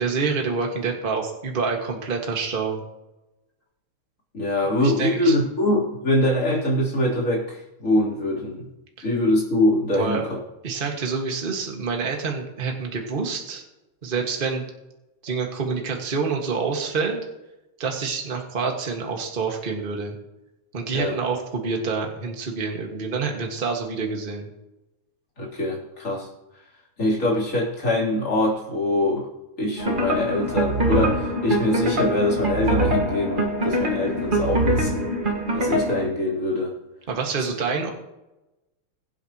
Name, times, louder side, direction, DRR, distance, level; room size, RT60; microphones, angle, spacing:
voice 1, 0.0-2.8 4.8-5.3 9.0-9.1 9.9-10.2 10.6-13.6 14.0-14.6 15.2-17.2 17.8-20.2 20.7-24.5 37.1-37.9, right 4 dB, 25° right, 1 dB, 1.2 m, -27 dB
voice 2, 4.3-8.7 9.0-10.4 20.9-21.2 25.4-26.3 27.0-29.3 29.6-35.0 35.5-36.7, left 1 dB, 25° left, -5 dB, 3.5 m, -23 dB
sound 1, 29.8-36.1, right 1 dB, 75° right, 0.4 m, -24 dB
22.0 x 8.0 x 3.0 m, 0.97 s
omnidirectional pair, 3.5 m